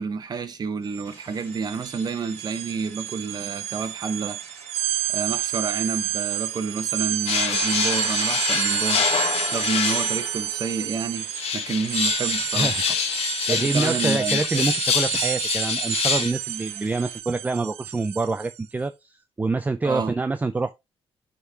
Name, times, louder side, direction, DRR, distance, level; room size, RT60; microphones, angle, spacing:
voice 1, 0.0-4.4 5.1-9.1 9.5-12.9 13.5-14.7 19.8-20.1, right 5 dB, 40° right, 1.0 m, -29 dB
sound 1, 0.9-1.0 1.3-18.6, right 13 dB, 80° right, 0.4 m, -29 dB
sound 2, 1.0-17.2, equal, 20° left, 3.1 m, -49 dB
sound 3, 7.3-10.5 11.2-16.3, left 8 dB, 70° left, 0.9 m, -26 dB
voice 2, 13.5-20.7, right 3 dB, 15° right, 0.4 m, -26 dB
9.6 x 3.8 x 2.8 m
cardioid pair, 100°, 11 cm